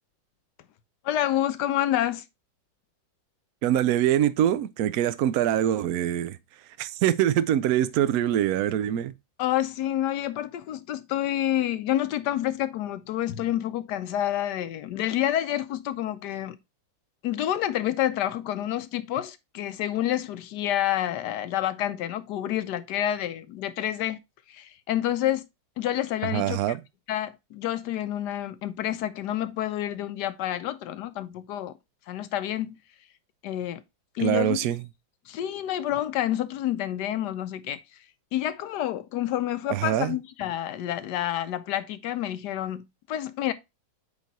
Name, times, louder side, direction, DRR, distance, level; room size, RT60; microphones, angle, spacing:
voice 1, 1.0-2.2 9.4-16.6 17.2-24.2 24.5-25.4 25.8-26.8 27.1-31.8 32.1-32.8 33.4-33.8 34.1-34.6 35.3-37.8 38.3-43.5, left 12 dB, 70° left, 1.1 m, -28 dB
voice 2, 3.6-6.4 6.8-9.1 26.3-26.8 34.2-34.8 39.7-40.2, right 11 dB, 75° right, 0.9 m, -24 dB
8.3 x 3.3 x 4.0 m
omnidirectional pair, 2.0 m